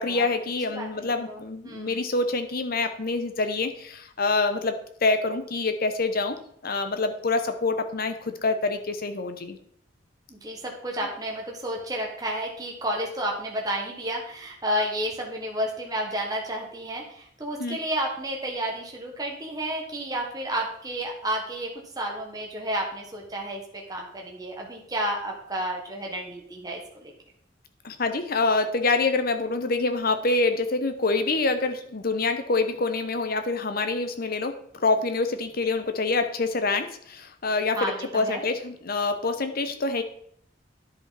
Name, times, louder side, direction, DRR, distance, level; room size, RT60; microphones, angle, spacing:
voice 1, 0.0-6.4 6.6-9.6 17.6-17.8 27.8-34.5 34.8-40.0, left 3 dB, 55° left, 8 dB, 0.9 m, -26 dB
voice 2, 0.7-2.0 10.3-27.1 37.7-38.4, right 1 dB, 20° right, -1 dB, 1.4 m, -31 dB
10.5 x 5.3 x 4.1 m, 0.66 s
head